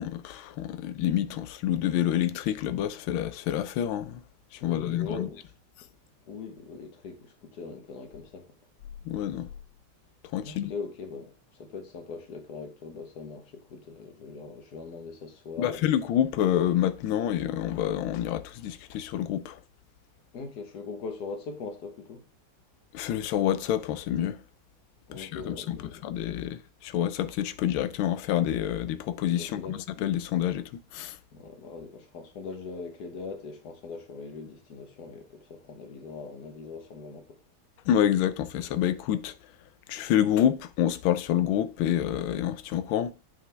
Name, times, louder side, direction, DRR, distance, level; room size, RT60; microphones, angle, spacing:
voice 1, 0.0-4.2 4.6-5.3 9.1-9.5 10.3-10.7 15.6-19.6 22.9-24.4 25.1-25.8 26.0-31.2 37.9-39.3 39.9-43.1, left 11 dB, 85° left, 1.4 m, -27 dB
voice 2, 4.6-5.5 6.3-8.5 10.4-15.9 20.3-22.3 25.1-26.0 29.4-29.8 31.3-37.4, left 4 dB, 55° left, 1.5 m, -41 dB
8.9 x 5.8 x 3.3 m
omnidirectional pair, 2.2 m